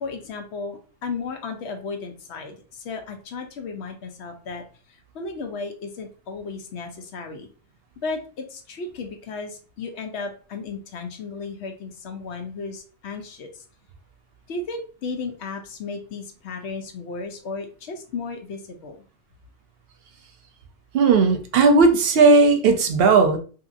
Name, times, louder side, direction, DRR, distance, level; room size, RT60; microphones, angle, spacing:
voice 1, 0.0-7.5 8.0-13.6 14.5-19.0, left 4 dB, 80° left, 5 dB, 0.9 m, -34 dB
voice 2, 20.9-23.4, right 4 dB, 65° right, 6 dB, 0.7 m, -16 dB
2.8 x 2.7 x 2.5 m, 0.38 s
omnidirectional pair, 1.1 m